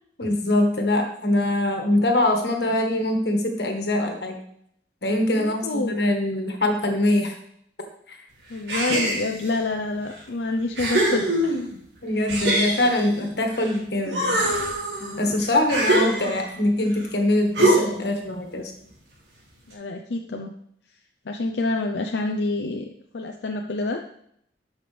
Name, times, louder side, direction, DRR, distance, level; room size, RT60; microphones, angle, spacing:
voice 1, 0.2-4.4 5.0-7.3 8.1-8.2 12.0-14.4 15.2-18.7, left 1 dB, 70° left, 4 dB, 1.5 m, -23 dB
voice 2, 5.4-6.0 8.5-11.7 19.7-20.5 21.3-22.9 23.1-24.0, left 2 dB, 85° left, 3 dB, 0.6 m, -27 dB
sound 1, 8.7-9.5 10.2-10.3 10.8-11.8 12.3-13.7 14.0-16.6 17.6-18.1, right 1 dB, 80° right, 2.5 m, -24 dB
12.5 x 5.6 x 3.4 m, 0.71 s
head